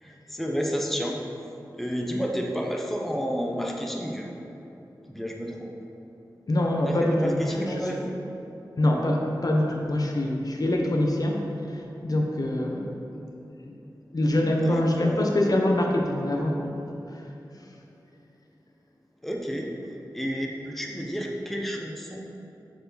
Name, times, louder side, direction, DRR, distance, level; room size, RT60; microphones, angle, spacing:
voice 1, 0.0-1.2 1.8-4.3 5.1-5.7 6.8-8.1 14.4-15.3 19.2-19.7 20.1-22.2, equal, 5° left, 0 dB, 0.7 m, -31 dB
voice 2, 6.5-7.9 8.8-11.4 12.0-13.0 13.7-13.8 14.1-16.7, left 1 dB, 55° left, 0 dB, 0.7 m, -24 dB
6.7 x 4.6 x 3.9 m, 2.9 s
wide cardioid pair, 60°, 8 cm